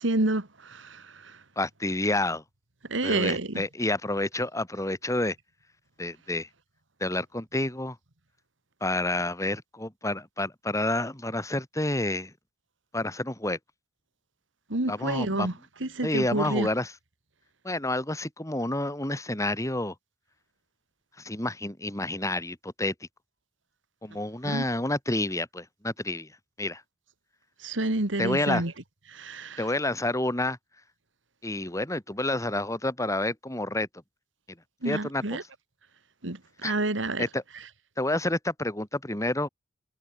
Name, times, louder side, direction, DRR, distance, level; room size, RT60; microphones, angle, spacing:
voice 1, 0.0-1.3 2.9-3.6 14.7-15.5 15.8-16.7 24.4-24.6 27.6-28.7 29.1-29.6 34.8-35.4 36.2-37.2, right 2 dB, 80° right, 2.4 m, -29 dB
voice 2, 1.6-2.4 3.0-5.4 6.0-6.5 7.0-8.0 8.8-12.3 12.9-13.6 14.9-15.6 16.0-16.9 17.6-19.9 21.2-22.9 24.0-26.3 26.6-26.8 28.2-28.6 29.6-30.6 31.4-33.9 34.8-35.5 36.6-36.7 37.2-37.4 38.0-39.5, left 1 dB, 15° left, 3.8 m, -29 dB
head